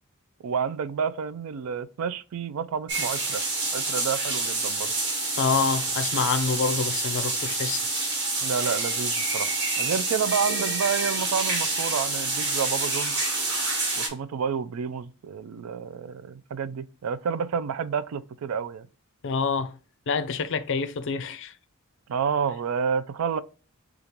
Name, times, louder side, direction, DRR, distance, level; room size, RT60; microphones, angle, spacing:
voice 1, 0.4-3.4 3.7-4.9 8.4-13.1 14.0-18.9 22.1-23.4, right 6 dB, 70° right, 0.4 m, -29 dB
sound 1, 2.9-14.1, right 3 dB, 55° right, 1.4 m, -27 dB
voice 2, 5.4-7.8 19.2-19.7 20.1-21.5, left 5 dB, 55° left, 0.5 m, -26 dB
5.0 x 2.4 x 2.9 m
head